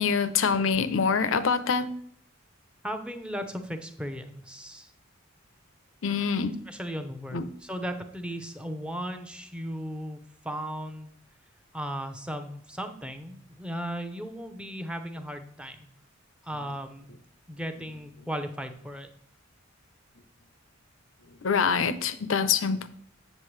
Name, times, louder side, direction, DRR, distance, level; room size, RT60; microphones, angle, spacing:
voice 1, 0.0-1.9 6.0-6.6 7.3-7.5 21.4-22.9, left 6 dB, 70° left, 0.6 m, -25 dB
voice 2, 2.8-4.9 6.7-11.1 11.7-15.8 16.4-17.1 17.5-19.1, equal, 5° right, 0.7 m, -36 dB
7.6 x 7.5 x 3.2 m
head